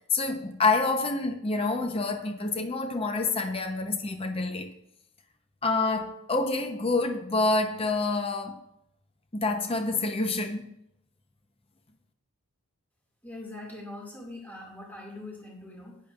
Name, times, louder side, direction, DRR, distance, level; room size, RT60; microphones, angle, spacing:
voice 1, 0.1-4.7 5.6-8.6 9.3-10.8, left 3 dB, 25° left, 0.8 m, -27 dB
voice 2, 13.2-16.0, left 2 dB, 10° left, 2.2 m, -42 dB
14.0 x 10.5 x 2.5 m
head